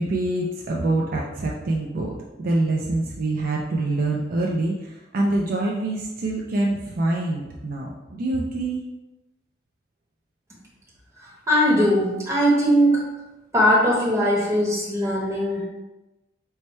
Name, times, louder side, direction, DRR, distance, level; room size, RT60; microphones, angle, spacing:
voice 1, 0.0-8.8, right 2 dB, 50° right, -2 dB, 0.4 m, -25 dB
voice 2, 11.2-13.0 13.5-15.7, equal, 15° right, -5 dB, 1.0 m, -20 dB
4.6 x 2.2 x 4.2 m, 1.0 s
head